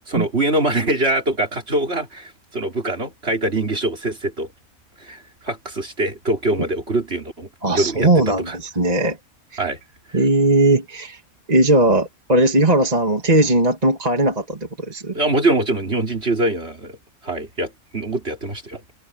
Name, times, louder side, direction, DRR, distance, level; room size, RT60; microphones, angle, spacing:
voice 1, 0.1-4.5 5.0-8.6 9.6-9.8 15.1-17.0 17.2-18.8, right 2 dB, 45° right, 3.8 m, -23 dB
voice 2, 7.6-9.2 9.5-9.7 10.1-11.2 11.5-15.2, right 2 dB, 25° right, 2.5 m, -18 dB
omnidirectional pair, 1.5 m